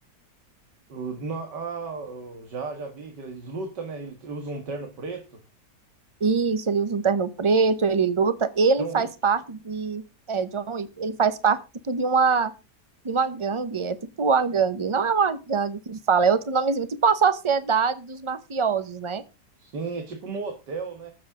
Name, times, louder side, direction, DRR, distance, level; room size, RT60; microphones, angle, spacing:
voice 1, 0.9-5.4 8.8-9.1 19.6-21.1, right 4 dB, 85° right, 4 dB, 2.3 m, -34 dB
voice 2, 6.2-10.0 10.3-11.6 11.9-12.5 13.0-19.2, right 5 dB, 30° right, 13 dB, 0.6 m, -23 dB
20.0 x 7.5 x 3.7 m, 0.30 s
omnidirectional pair, 1.8 m